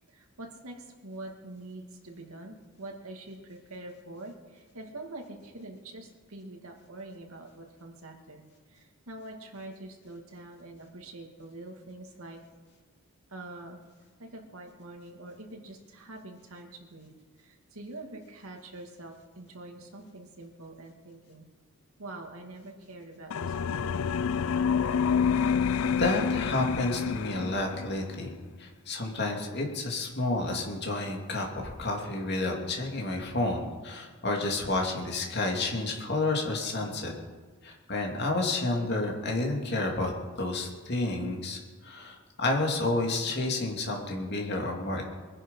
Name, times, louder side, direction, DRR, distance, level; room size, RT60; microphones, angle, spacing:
voice 1, 0.1-8.4 8.7-12.4 13.3-13.8 14.2-17.1 17.4-21.4 22.0-24.0, right 2 dB, 85° right, 2 dB, 2.4 m, -45 dB
sound 1, 23.3-28.0, left 6 dB, 80° left, 0.5 m, -28 dB
voice 2, 25.8-28.3 28.6-37.1 37.6-40.1 40.4-45.0, left 2 dB, 50° left, 1 dB, 2.8 m, -30 dB
22.0 x 10.5 x 5.6 m, 1.4 s
head